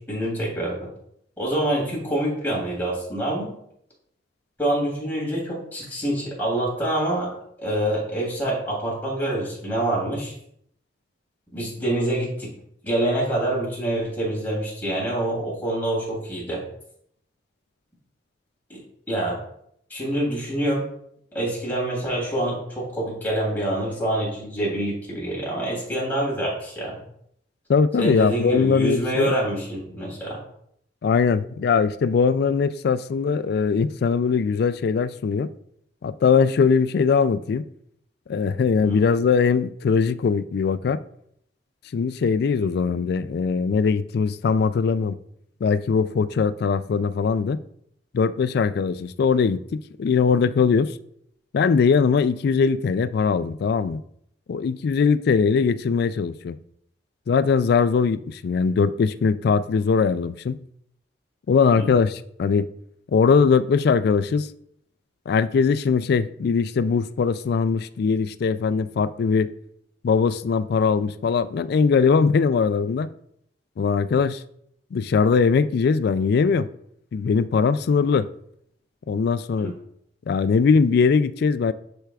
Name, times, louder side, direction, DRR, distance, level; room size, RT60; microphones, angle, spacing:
voice 1, 0.1-0.8 1.4-3.5 4.6-7.3 7.6-10.3 11.5-12.5 12.8-16.6 18.7-18.8 19.1-19.4 19.9-20.9 21.3-27.0 28.0-30.4 38.8-39.0 61.8-61.9 79.6-79.7, right 1 dB, 10° left, 2.9 m, -26 dB
voice 2, 27.7-29.4 31.0-35.5 36.0-37.7 38.3-41.0 41.9-45.2 45.6-47.6 48.1-50.9 51.5-54.0 54.5-56.5 57.3-60.6 61.5-62.7 63.1-64.5 65.3-69.5 70.0-73.1 73.8-74.4 74.9-76.7 77.1-78.3 79.1-79.7 80.3-81.7, left 5 dB, 60° left, 0.3 m, -21 dB
11.5 x 4.5 x 2.4 m
head